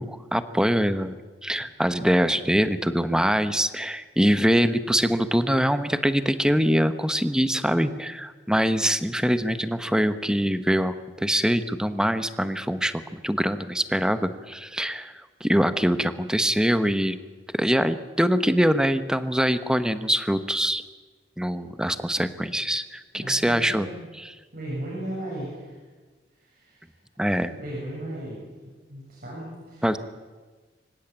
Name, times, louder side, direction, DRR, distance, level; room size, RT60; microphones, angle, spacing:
voice 1, 0.0-15.1 15.4-17.2 17.5-20.8 21.4-23.9 27.2-27.5 29.8-30.0, equal, 5° right, 11 dB, 1.0 m, -23 dB
voice 2, 23.1-24.0 24.5-25.7 26.4-26.8 27.4-28.4 28.9-29.9, right 1 dB, 55° right, -5 dB, 7.6 m, -36 dB
25.5 x 16.0 x 8.9 m, 1.4 s
head